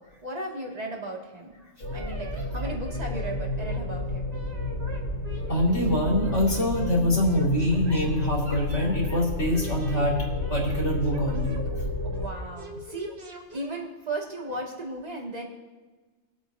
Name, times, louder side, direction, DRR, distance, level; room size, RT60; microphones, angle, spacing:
voice 1, 0.0-1.7 1.9-4.3 12.0-15.4, right 2 dB, 30° right, -1 dB, 2.0 m, -36 dB
sound 1, 1.8-12.3, left 1 dB, 75° left, 3.1 m, -31 dB
voice 2, 1.8-2.2 5.5-10.2 10.5-11.6, left 1 dB, 60° left, -4 dB, 3.3 m, -25 dB
sound 2, 1.9-3.3 3.6-3.8 4.1-8.0 8.4-9.2 9.5-11.6 12.1-13.8, right 1 dB, 50° right, 1.6 m, -44 dB
21.0 x 8.4 x 2.6 m, 1.3 s
omnidirectional pair, 1.4 m